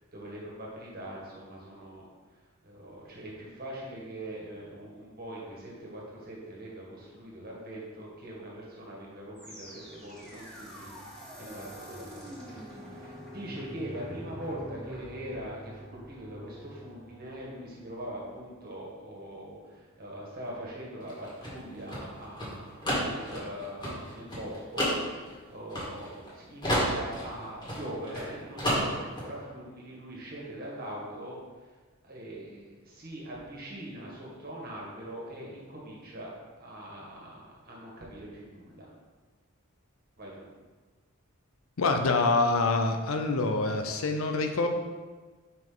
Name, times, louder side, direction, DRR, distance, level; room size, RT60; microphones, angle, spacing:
voice 1, 0.0-2.1 2.3-12.6 12.9-31.7 32.0-38.9 40.2-40.4, right 1 dB, 45° right, -4 dB, 1.6 m, -42 dB
sound 1, 9.3-18.5, equal, 5° left, 1.5 m, -46 dB
sound 2, 21.0-26.3 26.6-28.3 28.6-29.3, equal, 20° left, 1.8 m, -31 dB
voice 2, 41.8-44.7, left 3 dB, 75° left, 5 dB, 0.6 m, -26 dB
5.3 x 5.2 x 3.9 m, 1.4 s
head